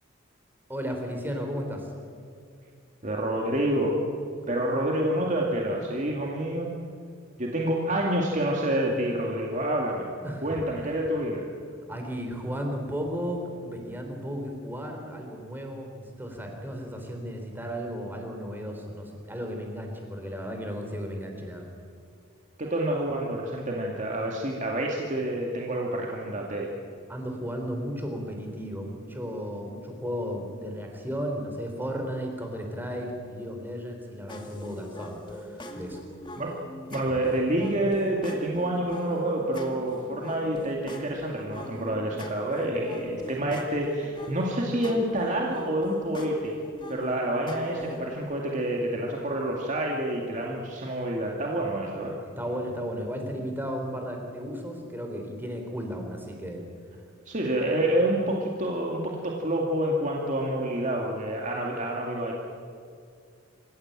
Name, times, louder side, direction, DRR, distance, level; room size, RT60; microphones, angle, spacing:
voice 1, 0.7-1.9 10.2-10.5 11.9-21.7 27.1-36.0 52.2-56.7, equal, 10° right, 3 dB, 3.6 m, -34 dB
voice 2, 3.0-4.0 4.5-6.7 7.4-10.1 10.4-11.4 22.6-26.7 36.4-36.6 36.9-46.6 46.9-52.1 57.3-62.4, right 1 dB, 35° right, -1 dB, 2.3 m, -28 dB
sound 1, 34.3-48.2, left 1 dB, 25° left, 2.1 m, -41 dB
26.0 x 16.0 x 8.9 m, 2.3 s
head